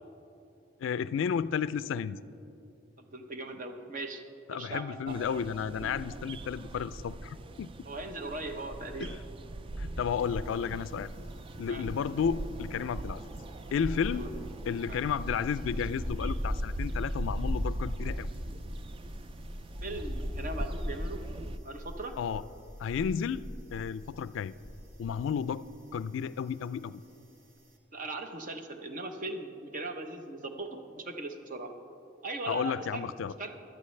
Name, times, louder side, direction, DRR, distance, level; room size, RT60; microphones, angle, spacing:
voice 1, 0.8-2.2 4.5-7.7 9.0-9.2 9.8-11.1 11.6-13.2 13.7-14.3 14.7-18.3 22.2-22.4 22.8-23.4 23.7-24.5 25.0-25.6 25.9-27.0 32.5-33.3, left 7 dB, 70° left, 16 dB, 0.3 m, -32 dB
voice 2, 3.0-4.2 4.5-5.3 7.9-9.1 11.7-11.8 14.1-14.3 14.9-15.0 19.8-21.2 21.6-22.2 27.9-31.7 32.2-33.1 33.4-33.5, right 2 dB, 45° right, 6 dB, 0.8 m, -39 dB
sound 1, 5.1-21.6, right 2 dB, 25° right, 0.3 m, -42 dB
sound 2, 10.6-11.4 11.7-25.2 25.5-25.7, equal, 80° right, 1.3 m, -37 dB
16.5 x 11.5 x 3.2 m, 2.8 s
head